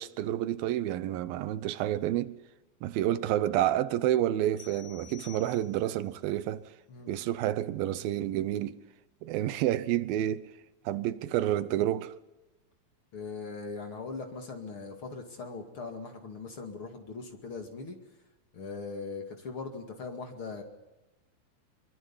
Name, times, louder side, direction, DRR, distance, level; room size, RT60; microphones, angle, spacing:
voice 1, 0.0-2.4 2.8-6.6 7.1-8.8 9.2-10.5 10.9-12.1, right 12 dB, 85° right, 2.7 m, -29 dB
sound 1, 4.6-6.1, left 10 dB, 60° left, 3.7 m, -51 dB
voice 2, 13.1-18.0 18.5-20.6, left 4 dB, 40° left, 2.6 m, -40 dB
24.0 x 23.5 x 5.6 m
omnidirectional pair, 4.1 m